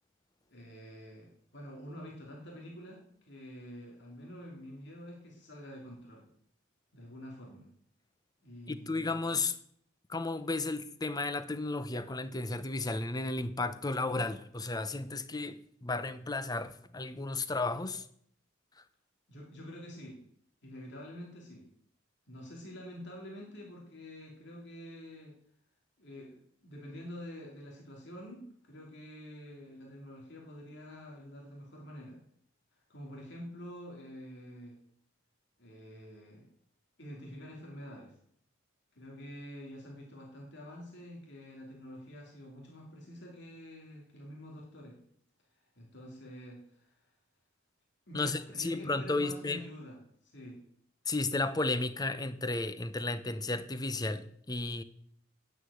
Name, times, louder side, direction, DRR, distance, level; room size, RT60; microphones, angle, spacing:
voice 1, 0.5-6.3 6.9-7.7 8.4-9.2 19.3-20.2 20.6-21.7 22.3-25.3 26.0-32.2 32.9-34.8 35.6-36.4 37.0-38.2 38.9-45.0 45.5-47.1 48.1-50.0 50.2-50.6, equal, 60° left, 2.8 m, -47 dB
voice 2, 8.7-9.6 10.1-18.0 48.1-49.6 51.1-54.8, left 2 dB, 20° left, 0.7 m, -33 dB
9.7 x 7.9 x 8.4 m
head